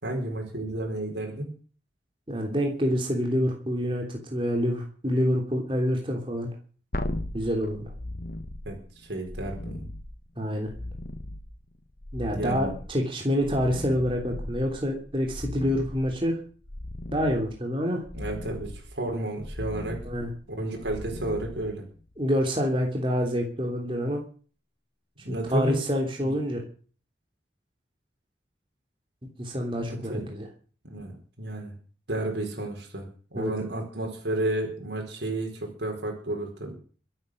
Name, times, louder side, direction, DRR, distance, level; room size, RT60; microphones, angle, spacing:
voice 1, 0.0-1.5 8.6-9.8 12.3-12.8 18.1-20.1 20.5-21.8 25.2-25.8 26.2-26.3 29.9-30.3 30.8-31.1 31.4-31.7 32.1-36.7, right 1 dB, 80° right, 1 dB, 4.7 m, -32 dB
voice 2, 2.3-6.5 7.3-7.9 10.4-10.7 12.1-16.4 17.1-18.0 20.0-20.3 22.2-24.2 25.3-26.6 29.4-30.5 33.3-33.7, equal, 30° right, 1 dB, 3.1 m, -27 dB
Basspad (Phase), 6.9-22.2 25.4-25.5, left 1 dB, 50° left, 1.6 m, -38 dB
24.0 x 8.9 x 6.5 m, 0.42 s
head